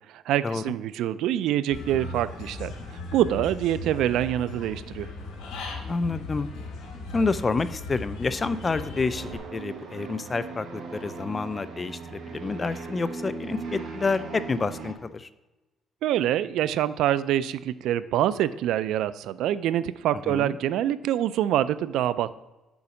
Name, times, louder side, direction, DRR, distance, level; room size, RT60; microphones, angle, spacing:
voice 1, 0.1-5.1 16.0-22.3, right 12 dB, 80° right, 15 dB, 0.3 m, -25 dB
Human voice / Bird, 1.7-9.4, left 3 dB, 90° left, 2.1 m, -37 dB
voice 2, 5.9-6.5 7.1-15.3 20.3-20.6, left 4 dB, 25° left, 13 dB, 0.4 m, -28 dB
sound 1, 8.2-14.9, right 4 dB, 65° right, 1.3 m, -39 dB
7.0 x 5.1 x 4.8 m, 1.1 s
cardioid pair, 130°, 0 cm